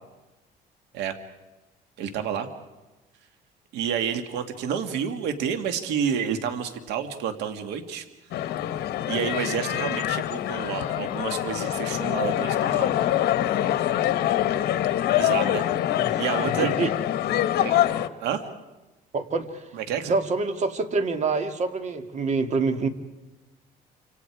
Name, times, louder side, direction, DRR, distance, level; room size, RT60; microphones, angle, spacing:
voice 1, 2.0-2.5 3.7-8.0 9.1-12.9 15.1-15.7 16.2-16.7 17.6-17.8 18.2-18.4 19.7-20.2, right 8 dB, 85° right, 7 dB, 2.2 m, -29 dB
sound 1, 8.3-18.1, left 12 dB, 70° left, 1.3 m, -25 dB
voice 2, 16.6-16.9 19.1-19.7 20.1-22.9, right 4 dB, 45° right, 7 dB, 2.3 m, -26 dB
28.5 x 26.5 x 4.8 m, 1.1 s
cardioid pair, 110°, 17 cm